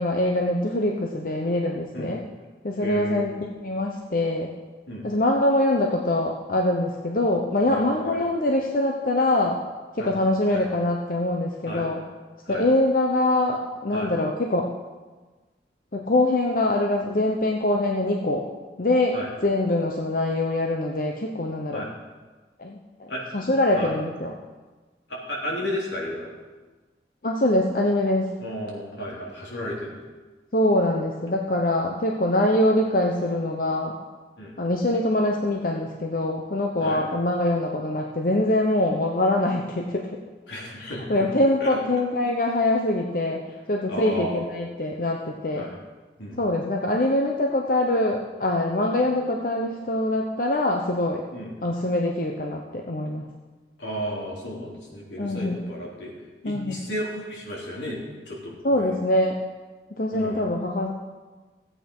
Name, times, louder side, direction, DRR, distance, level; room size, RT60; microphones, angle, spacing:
voice 1, 0.0-2.2 2.6-3.3 3.6-4.5 5.0-9.6 10.0-12.0 12.5-14.7 15.9-18.5 18.8-19.2 19.4-21.8 22.6-24.3 27.2-28.3 30.5-34.0 34.6-40.2 40.8-45.7 46.4-51.2 51.6-53.2 55.2-55.6 56.4-56.8 58.6-59.4 60.0-60.9, left 1 dB, 50° left, 1 dB, 0.9 m, -24 dB
voice 2, 2.8-3.3 4.9-5.1 7.7-8.3 10.0-10.1 10.5-10.6 11.6-11.9 12.4-12.6 13.9-14.1 19.1-19.3 21.7-21.9 23.1-23.4 23.7-23.9 25.1-26.3 28.4-30.0 34.4-34.5 36.8-37.0 40.5-41.3 41.6-41.8 43.9-44.5 45.5-45.8 46.2-46.4 51.3-51.5 53.8-56.1 56.4-58.0 58.2-58.9 60.1-60.5, equal, 80° left, -3 dB, 3.4 m, -33 dB
15.0 x 8.4 x 5.5 m, 1.3 s
head